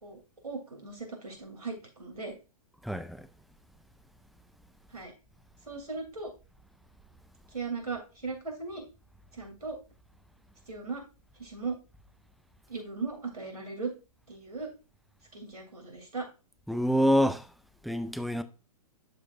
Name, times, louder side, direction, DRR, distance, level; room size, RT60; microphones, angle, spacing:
voice 1, 0.0-2.3 4.9-5.1 5.7-6.3 7.5-8.8 9.4-9.8 10.7-11.0 11.4-11.8 12.7-13.9 14.3-14.7 15.3-16.3, right 4 dB, 85° right, 2.9 m, -38 dB
voice 2, 2.8-3.3 16.7-17.5 17.8-18.4, equal, ahead, 0.3 m, -26 dB
12.0 x 4.5 x 2.5 m
figure-of-eight pair, 115°, 19 cm